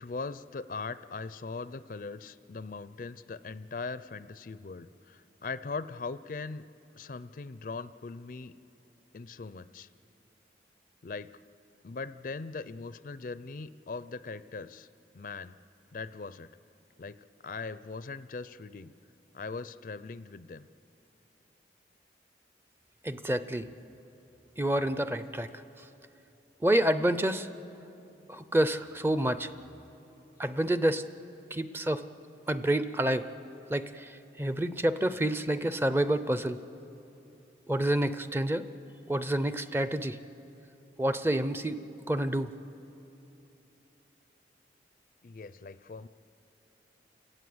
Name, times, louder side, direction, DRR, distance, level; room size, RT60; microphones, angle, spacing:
voice 1, 0.0-6.6 6.9-8.5 9.1-9.9 11.0-11.3 11.8-14.9 15.1-15.6 15.9-16.5 17.0-17.2 17.4-18.9 19.3-20.7 45.2-46.1, left 4 dB, 50° left, 15 dB, 0.4 m, -40 dB
voice 2, 23.0-23.7 24.6-25.5 26.6-27.5 28.3-29.5 30.4-31.0 31.5-32.0 32.5-33.2 33.7-34.1 34.4-36.6 37.7-38.6 39.1-40.2 41.0-41.8 42.1-42.5, right 1 dB, 10° right, 12 dB, 0.5 m, -28 dB
29.0 x 18.0 x 7.9 m, 3.0 s
head